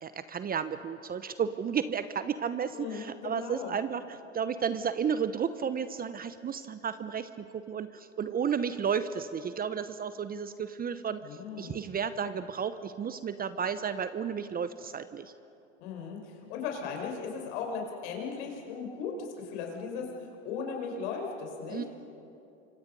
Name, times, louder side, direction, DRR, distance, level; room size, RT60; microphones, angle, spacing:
voice 1, 0.0-11.2 11.6-15.3 21.7-21.8, right 7 dB, 25° right, 12 dB, 0.9 m, -33 dB
voice 2, 2.7-3.7 11.2-11.9 15.8-20.1 20.4-21.9, left 5 dB, 60° left, 1 dB, 5.7 m, -37 dB
28.5 x 25.5 x 5.5 m, 2.7 s
hypercardioid pair, 85°, 38 cm